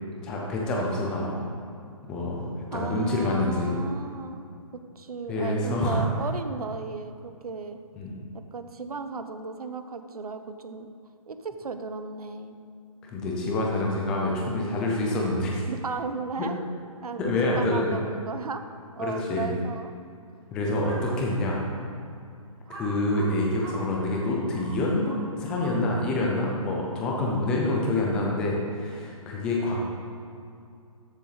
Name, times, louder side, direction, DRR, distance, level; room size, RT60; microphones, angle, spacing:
voice 1, 0.2-1.4 2.1-2.5 2.7-3.7 5.3-6.0 8.0-8.1 13.0-15.6 16.4-16.5 17.2-18.0 19.0-19.5 20.5-21.6 22.7-29.8, left 2 dB, 5° left, -2 dB, 0.4 m, -27 dB
voice 2, 2.7-4.5 4.9-7.8 8.5-10.9 11.3-12.6 15.7-16.6 17.0-18.6 18.9-19.9 27.2-27.5, right 4 dB, 90° right, 8 dB, 1.0 m, -35 dB
Crow, 20.7-21.2 21.8-21.9 22.7-26.1, right 2 dB, 40° right, 1.8 m, -43 dB
13.5 x 7.2 x 4.0 m, 2.4 s
hypercardioid pair, 170°, 19 cm